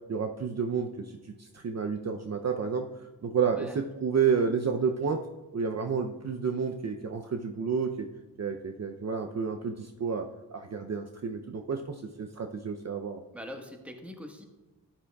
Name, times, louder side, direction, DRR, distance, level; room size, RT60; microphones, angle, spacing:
voice 1, 0.1-5.2 5.5-8.1 8.4-13.2, right 6 dB, 45° right, 5 dB, 0.6 m, -30 dB
voice 2, 13.3-14.5, equal, 5° right, 3 dB, 1.4 m, -42 dB
13.0 x 8.8 x 2.3 m, 1.2 s
cardioid pair, 65°, 38 cm